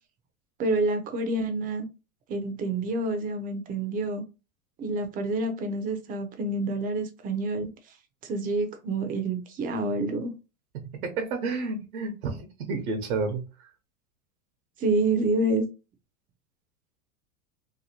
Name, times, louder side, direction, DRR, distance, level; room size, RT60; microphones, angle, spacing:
voice 1, 0.6-1.9 2.3-4.2 4.8-7.7 8.2-10.3 14.8-15.7, right 2 dB, 20° right, 0.4 m, -28 dB
voice 2, 10.7-13.7, right 4 dB, 90° right, 0.8 m, -31 dB
2.8 x 2.6 x 2.7 m
hypercardioid pair, 120°, 43 cm